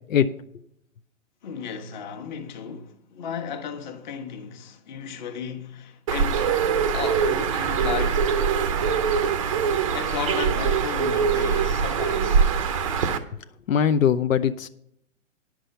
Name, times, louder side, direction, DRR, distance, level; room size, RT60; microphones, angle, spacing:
voice 1, 1.4-6.5 6.9-8.4 9.9-12.4, left 7 dB, 35° left, 1.3 m, -34 dB
Bird, 6.1-13.2, right 6 dB, 25° right, 0.6 m, -23 dB
voice 2, 13.7-14.7, left 8 dB, 80° left, 0.7 m, -21 dB
10.0 x 6.1 x 6.8 m
hypercardioid pair, 155°, 39 cm